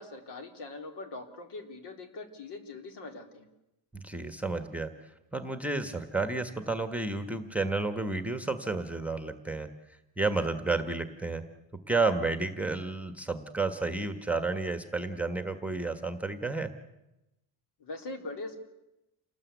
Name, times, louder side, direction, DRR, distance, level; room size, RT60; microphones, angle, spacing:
voice 1, 0.0-3.5 17.8-18.6, left 2 dB, 65° left, 6 dB, 3.7 m, -42 dB
voice 2, 3.9-4.9 5.3-9.7 10.2-11.4 11.9-16.7, right 3 dB, 5° right, 8 dB, 1.3 m, -31 dB
28.5 x 19.5 x 8.3 m, 0.95 s
cardioid pair, 155°, 43 cm